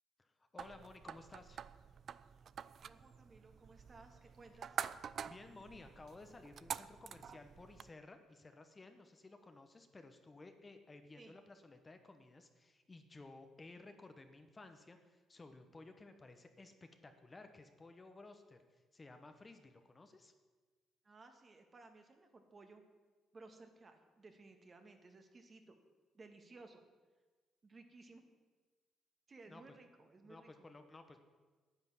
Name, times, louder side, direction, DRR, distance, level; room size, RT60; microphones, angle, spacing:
voice 1, 0.2-1.6 5.3-20.3 29.5-29.6 30.2-31.2, left 2 dB, 25° left, 7 dB, 1.1 m, -56 dB
sound 1, 0.6-7.9, right 7 dB, 55° right, 0.4 m, -47 dB
voice 2, 2.8-4.8 11.1-11.4 21.0-22.8 23.3-25.7 26.1-26.8 27.6-28.2 29.3-30.7, right 3 dB, 35° right, 6 dB, 1.7 m, -59 dB
9.8 x 8.9 x 7.3 m, 1.3 s
cardioid pair, 90°, 0 cm